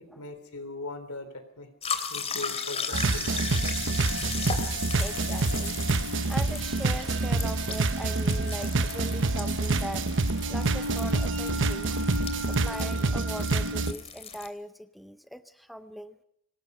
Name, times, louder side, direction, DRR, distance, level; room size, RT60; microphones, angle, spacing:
voice 1, 0.0-1.7 2.1-3.5 3.8-4.3, left 2 dB, 70° left, 9 dB, 3.6 m, -40 dB
sound 1, 1.8-14.5, left 5 dB, 30° left, 2.8 m, -37 dB
sound 2, 2.9-13.9, right 3 dB, 55° right, 1.1 m, -27 dB
voice 2, 5.0-5.8 6.3-10.1 10.5-11.9 12.5-16.2, equal, ahead, 10 dB, 0.7 m, -40 dB
sound 3, 6.1-12.6, right 6 dB, 75° right, 6.9 m, -55 dB
25.5 x 19.5 x 5.5 m, 0.77 s
head